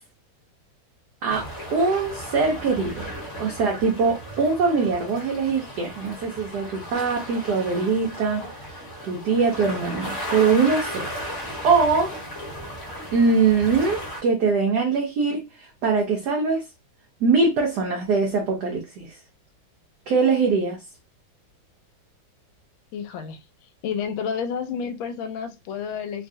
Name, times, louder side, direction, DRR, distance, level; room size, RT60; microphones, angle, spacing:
voice 1, 1.2-3.1 3.4-11.1 11.6-12.2 13.1-16.6 17.2-19.2 20.1-20.8, right 4 dB, 70° right, 1.0 m, -22 dB
sound 1, 1.3-14.2, equal, 45° left, 1.1 m, -35 dB
voice 2, 22.9-23.4 23.8-26.3, left 6 dB, 80° left, 1.4 m, -30 dB
3.2 x 2.3 x 2.6 m
omnidirectional pair, 2.2 m